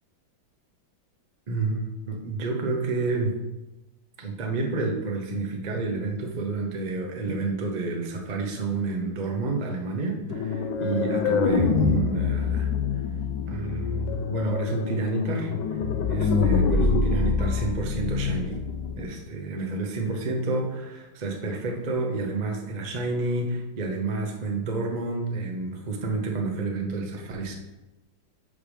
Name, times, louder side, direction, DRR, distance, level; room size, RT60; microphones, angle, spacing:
voice 1, 1.5-3.4 4.2-12.7 13.5-15.5 16.1-18.6 19.0-27.5, right 3 dB, 50° right, 1 dB, 0.5 m, -29 dB
sound 1, 10.3-19.1, left 4 dB, 75° left, 1.3 m, -25 dB
5.6 x 5.0 x 4.9 m, 1.0 s
omnidirectional pair, 2.1 m